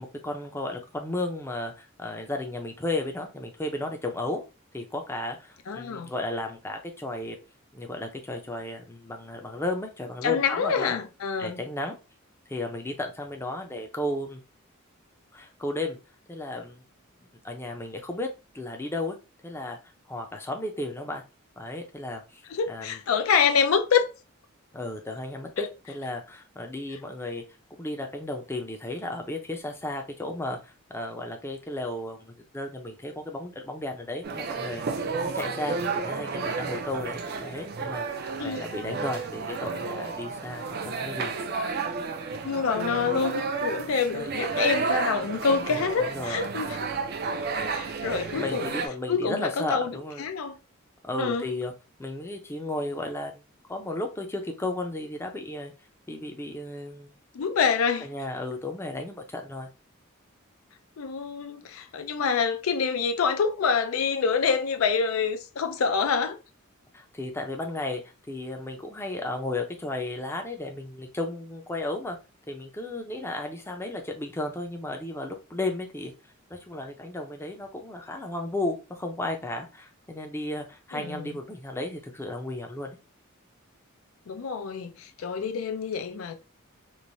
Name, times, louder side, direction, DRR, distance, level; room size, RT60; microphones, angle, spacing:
voice 1, 0.0-4.4 4.7-7.4 7.7-11.0 11.4-12.0 12.5-14.4 15.3-16.0 16.3-16.8 17.4-18.3 18.5-19.2 19.4-19.8 20.1-21.2 21.6-22.4 22.7-23.0 24.7-27.4 27.8-35.1 35.3-41.4 44.1-44.3 45.7-46.4 48.3-50.2 51.0-51.7 52.0-53.4 53.7-55.7 56.1-57.1 58.0-59.7 66.9-68.0 68.3-72.2 72.5-76.1 76.5-83.0, left 2 dB, 10° left, 0.4 m, -34 dB
voice 2, 5.7-6.1 10.2-11.6 22.5-24.1 25.6-25.7 38.4-38.6 42.4-46.8 47.7-48.7 49.1-50.6 51.2-51.5 57.3-58.1 61.0-66.4 80.9-81.3 84.3-86.3, left 5 dB, 85° left, 0.4 m, -26 dB
sound 1, 34.2-48.9, right 4 dB, 50° right, 0.4 m, -31 dB
3.1 x 2.1 x 2.6 m
head